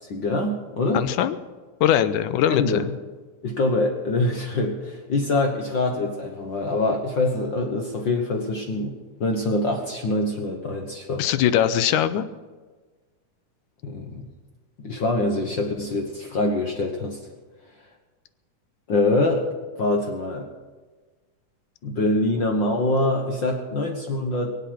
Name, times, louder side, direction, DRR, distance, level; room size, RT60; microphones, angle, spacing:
voice 1, 0.1-1.0 2.5-2.9 3.4-11.2 13.8-14.2 14.8-17.2 18.9-19.5 19.8-20.5 21.8-24.6, left 2 dB, 55° left, 2 dB, 1.4 m, -24 dB
voice 2, 0.9-1.4 1.8-3.0 11.2-12.3, left 10 dB, 85° left, 13 dB, 2.2 m, -21 dB
23.0 x 8.3 x 5.9 m, 1.4 s
omnidirectional pair, 3.6 m